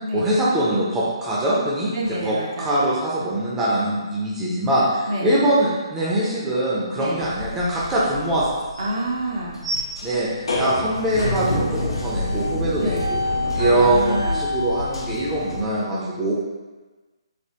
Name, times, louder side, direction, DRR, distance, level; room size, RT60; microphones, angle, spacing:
voice 1, 0.1-8.6 10.0-13.2 13.5-16.3, right 1 dB, 10° right, -8 dB, 0.6 m, -23 dB
voice 2, 1.9-2.9 5.1-5.3 7.0-7.2 8.8-9.6 12.8-13.1 13.6-14.4, right 1 dB, 55° right, -3 dB, 0.7 m, -28 dB
sound 1, 7.2-15.6, left 2 dB, 70° left, 0.6 m, -27 dB
sound 2, 8.4-8.9 9.6-11.2 11.9-12.0, right 2 dB, 80° right, 1.3 m, -32 dB
3.4 x 2.3 x 2.8 m, 1.2 s
figure-of-eight pair, 135°, 3 cm